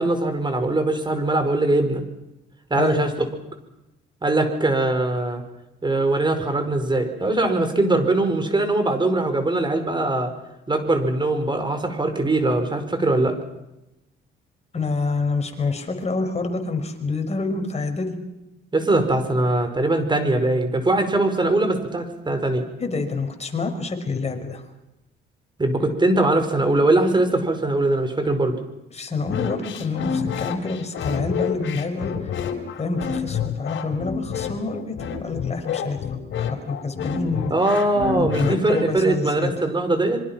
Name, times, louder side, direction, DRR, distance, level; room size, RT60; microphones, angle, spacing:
voice 1, 0.0-2.0 2.7-3.3 4.2-5.4 5.8-10.3 10.7-13.4 18.7-22.7 25.6-28.6 37.5-40.2, right 2 dB, 25° right, 8 dB, 5.2 m, -21 dB
voice 2, 14.7-18.1 19.3-19.4 22.8-24.6 28.9-32.3 32.8-35.0 35.2-36.0 36.4-37.5 38.0-39.7, left 3 dB, 35° left, 5 dB, 5.4 m, -27 dB
sound 1, 29.2-39.0, left 7 dB, 70° left, 4.0 m, -28 dB
26.0 x 24.5 x 6.0 m, 0.94 s
cardioid pair, 90°, 20 cm